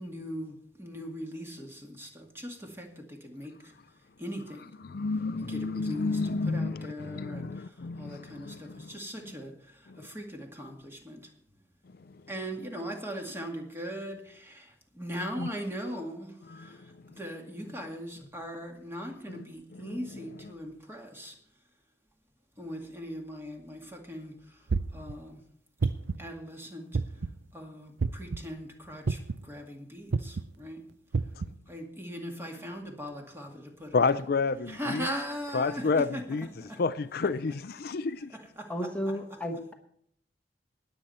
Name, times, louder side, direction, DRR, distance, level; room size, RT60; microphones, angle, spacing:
voice 1, 0.0-3.8 4.2-4.6 5.4-11.3 12.3-21.4 22.6-25.4 26.2-26.9 27.5-30.8 31.7-33.9 34.7-36.8 38.3-39.2, equal, 15° right, 2.1 m, -40 dB
voice 2, 4.8-8.9 9.9-10.0 15.4-15.5 16.5-16.8 19.3-19.4 19.7-20.0 33.9-35.1 35.5-36.5 36.8-38.3, left 4 dB, 60° left, 0.5 m, -30 dB
sound 1, 24.7-25.1 25.8-26.3 26.9-27.4 28.0-28.4 29.1-29.5 30.1-30.4 31.1-31.5, right 4 dB, 80° right, 0.5 m, -28 dB
voice 3, 38.7-39.7, equal, 10° left, 1.1 m, -33 dB
20.0 x 8.0 x 4.3 m
head